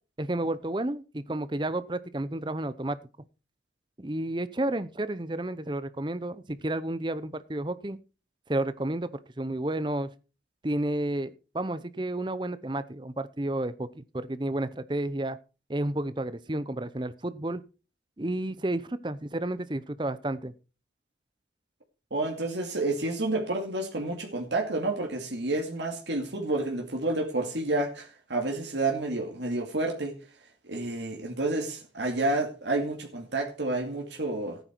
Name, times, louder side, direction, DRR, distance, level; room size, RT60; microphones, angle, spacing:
voice 1, 0.2-3.0 4.0-8.0 8.5-9.1 9.4-10.1 10.6-15.4 15.7-17.6 18.2-20.5, right 1 dB, 25° right, 0.7 m, -31 dB
voice 2, 22.1-30.2 30.6-34.6, right 2 dB, 85° right, 2.4 m, -30 dB
14.0 x 9.3 x 4.6 m
head